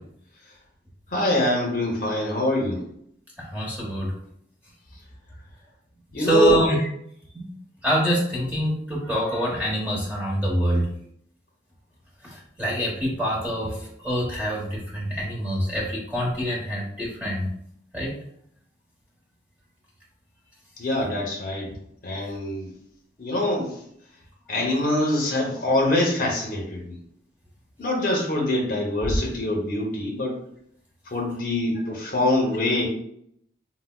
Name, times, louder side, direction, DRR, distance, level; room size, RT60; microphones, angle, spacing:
voice 1, 1.1-2.8 6.1-6.6 20.8-21.7 22.0-22.7 23.2-23.8 24.5-27.0 27.8-30.4 31.1-32.9, left 1 dB, 50° left, -1 dB, 0.7 m, -24 dB
voice 2, 3.4-4.1 6.2-6.8 7.3-7.5 7.8-10.9 12.6-13.7 14.0-17.5 17.9-18.1, right 1 dB, 10° right, -5 dB, 1.0 m, -25 dB
4.7 x 2.0 x 2.2 m, 0.69 s
head